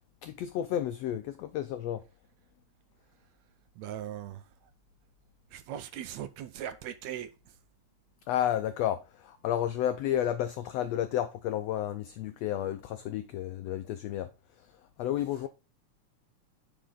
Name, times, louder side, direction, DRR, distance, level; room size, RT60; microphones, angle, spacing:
voice 1, 0.2-2.0 8.3-14.3 15.0-15.5, left 11 dB, 90° left, 1.4 m, -31 dB
voice 2, 3.8-4.4 5.5-7.3, right 10 dB, 75° right, 1.7 m, -39 dB
10.0 x 5.1 x 3.8 m
omnidirectional pair, 3.6 m